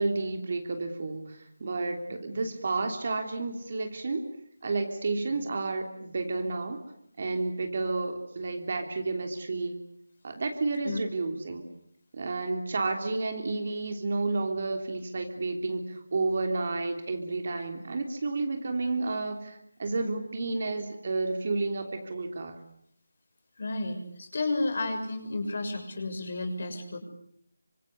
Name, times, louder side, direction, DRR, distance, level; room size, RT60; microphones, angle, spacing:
voice 1, 0.0-4.3 4.6-6.8 7.2-9.7 10.2-11.6 12.1-22.6, right 3 dB, 45° right, 5 dB, 3.3 m, -31 dB
voice 2, 23.6-27.0, left 2 dB, 55° left, 4 dB, 6.5 m, -32 dB
26.5 x 25.5 x 8.2 m, 0.71 s
figure-of-eight pair, 165°, 0 cm